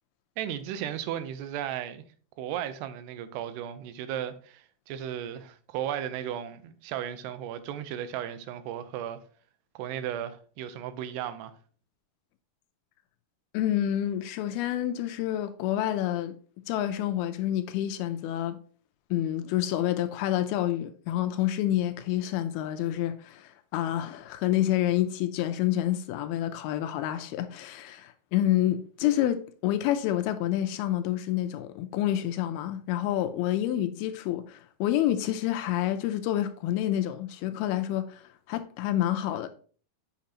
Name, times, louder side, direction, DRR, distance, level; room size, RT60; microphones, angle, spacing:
voice 1, 0.4-2.0 2.4-9.2 9.8-11.5, right 10 dB, 90° right, 2.8 m, -35 dB
voice 2, 13.5-16.4 16.7-18.6 19.1-39.5, left 12 dB, 80° left, 2.3 m, -28 dB
8.3 x 5.9 x 2.8 m
omnidirectional pair, 4.7 m